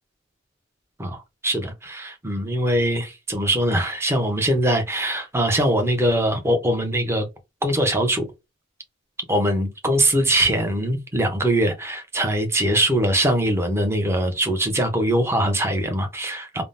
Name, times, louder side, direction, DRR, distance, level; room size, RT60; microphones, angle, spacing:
voice 1, 1.0-7.3 7.6-8.3 9.3-16.6, right 1 dB, 15° right, 0.6 m, -22 dB
3.5 x 2.0 x 2.5 m
head